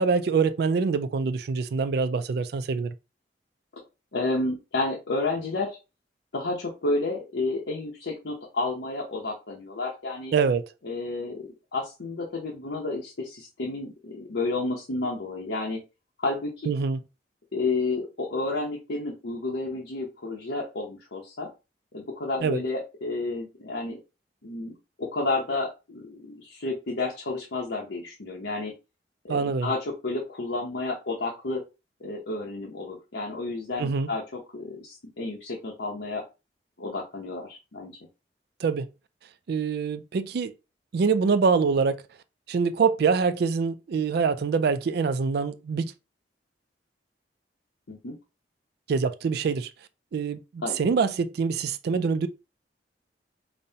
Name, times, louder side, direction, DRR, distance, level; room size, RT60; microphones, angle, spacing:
voice 1, 0.0-2.9 10.3-10.7 16.7-17.0 22.4-22.6 29.3-29.7 33.8-34.1 38.6-38.9 39.5-40.5 40.9-42.0 42.5-45.9 48.9-49.7 50.1-52.3, right 5 dB, 60° right, 0.3 m, -25 dB
voice 2, 4.1-5.8 6.3-10.3 10.8-15.8 16.2-16.7 17.5-21.5 21.9-24.0 24.4-28.7 29.2-31.6 32.0-36.2 36.8-38.0 47.9-48.2 50.6-50.8, left 3 dB, 80° left, 0.8 m, -31 dB
5.2 x 2.1 x 2.7 m
head